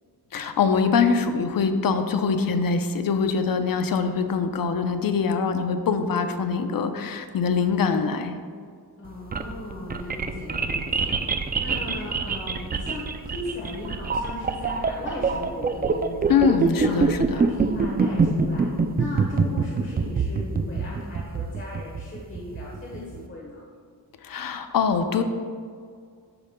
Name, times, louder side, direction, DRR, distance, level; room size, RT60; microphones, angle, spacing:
voice 1, 0.3-8.3 16.3-17.4 24.2-25.2, left 5 dB, 60° left, 8 dB, 0.6 m, -23 dB
voice 2, 9.0-11.1 11.6-17.0 17.3-18.7 18.9-23.6, left 1 dB, 30° left, -5 dB, 1.2 m, -37 dB
sound 1, 9.1-23.2, right 4 dB, 25° right, 0.3 m, -25 dB
12.0 x 5.0 x 2.2 m, 2.1 s
wide cardioid pair, 105°, 38 cm